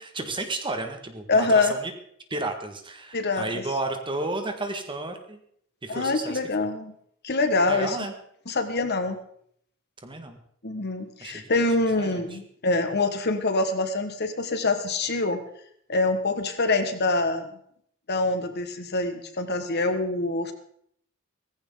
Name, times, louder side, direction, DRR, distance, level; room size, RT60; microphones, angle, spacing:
voice 1, 0.0-1.9 2.3-5.4 5.8-6.4 7.7-8.1 10.0-10.4 11.2-11.4 12.0-12.4, right 2 dB, 25° right, 6 dB, 1.8 m, -32 dB
voice 2, 1.3-1.7 3.1-3.6 5.9-6.9 7.2-8.0 8.5-9.2 10.6-15.4 15.9-17.5 18.1-20.5, left 3 dB, 55° left, 8 dB, 1.6 m, -25 dB
17.0 x 15.5 x 3.9 m, 0.67 s
head